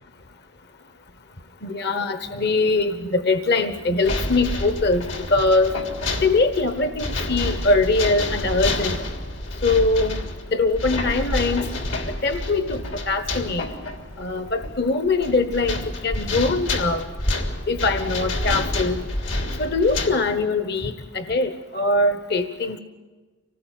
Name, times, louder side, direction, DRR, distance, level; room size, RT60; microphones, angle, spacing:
voice 1, 1.6-5.8 6.2-9.0 9.6-10.2 10.5-11.7 12.1-13.7 14.2-17.0 17.7-19.0 19.6-22.8, left 3 dB, 55° left, 10 dB, 1.2 m, -22 dB
sound 1, 4.0-20.1, left 2 dB, 75° left, 3.3 m, -28 dB
25.5 x 19.0 x 9.2 m, 1.3 s
head